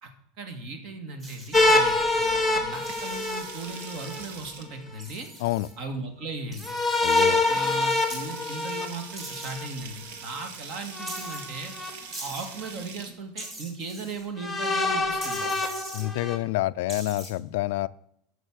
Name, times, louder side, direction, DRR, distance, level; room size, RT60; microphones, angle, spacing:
voice 1, 0.4-5.3 5.8-6.7 7.5-11.7 12.2-15.6, right 3 dB, 45° right, 6 dB, 2.1 m, -37 dB
sound 1, 1.2-1.9 2.8-3.5 5.0-5.7 6.5-7.3 8.1-8.3 9.2-9.5 11.1-11.4 12.1-12.5 13.4-14.2 15.2-16.0 16.9-17.3, right 1 dB, 20° right, 3.2 m, -41 dB
sound 2, 1.5-4.2 6.6-9.7 10.9-11.9 12.6-12.7 14.4-16.4, left 2 dB, ahead, 1.4 m, -25 dB
sound 3, 2.5-4.9 6.3-6.4 6.8-6.9 7.3-13.1 14.8-15.4, right 5 dB, 75° right, 1.8 m, -43 dB
voice 2, 7.0-7.4 15.9-17.9, left 17 dB, 75° left, 16 dB, 0.4 m, -28 dB
13.5 x 6.6 x 6.4 m, 0.72 s
supercardioid pair, 170°, 0 cm